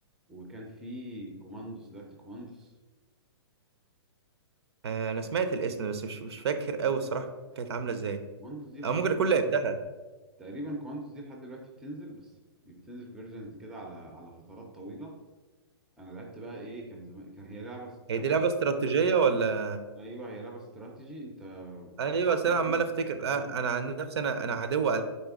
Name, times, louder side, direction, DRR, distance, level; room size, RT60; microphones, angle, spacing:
voice 1, 0.3-2.7 8.4-9.7 10.4-12.3 12.6-15.1 16.0-18.3 20.0-22.0 22.6-22.9 23.3-23.6, right 1 dB, 5° right, 0 dB, 0.4 m, -43 dB
voice 2, 4.8-7.3 7.6-8.2 8.8-9.7 18.1-19.8 22.0-25.0, right 5 dB, 75° right, 9 dB, 0.5 m, -28 dB
4.2 x 3.3 x 3.5 m, 1.2 s
hypercardioid pair, 155°, 14 cm